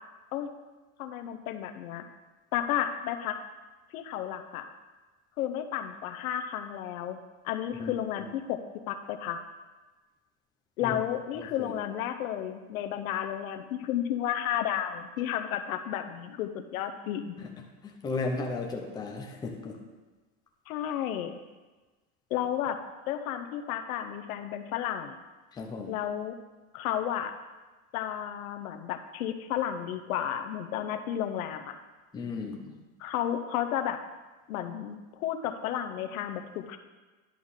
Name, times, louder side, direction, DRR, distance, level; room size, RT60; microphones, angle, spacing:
voice 1, 1.0-2.0 2.5-3.4 3.9-4.7 5.4-7.2 7.4-8.6 8.9-9.4 10.8-17.4 20.7-21.3 22.3-22.8 23.1-25.2 25.9-26.3 26.7-27.3 27.9-31.8 33.0-34.0 34.5-36.8, left 10 dB, 80° left, 8 dB, 0.9 m, -32 dB
voice 2, 11.3-11.8 17.4-17.5 17.8-19.8 25.5-26.0 32.1-32.8, left 3 dB, 10° left, 1 dB, 0.7 m, -35 dB
11.0 x 3.7 x 6.4 m, 1.2 s
supercardioid pair, 155°, 42 cm